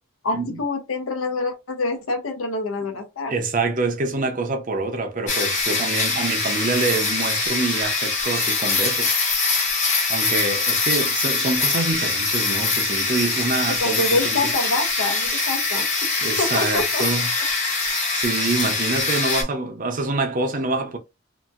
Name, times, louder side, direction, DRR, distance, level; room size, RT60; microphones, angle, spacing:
voice 1, 0.2-3.3 13.7-15.9 16.4-17.0 17.4-17.5, left 2 dB, 80° left, 0.8 m, -26 dB
voice 2, 3.3-9.2 10.1-14.3 16.2-17.3 18.1-21.0, right 3 dB, 40° right, 0.6 m, -26 dB
sound 1, 5.3-19.4, left 3 dB, 35° left, 1.0 m, -23 dB
2.9 x 2.6 x 2.4 m
head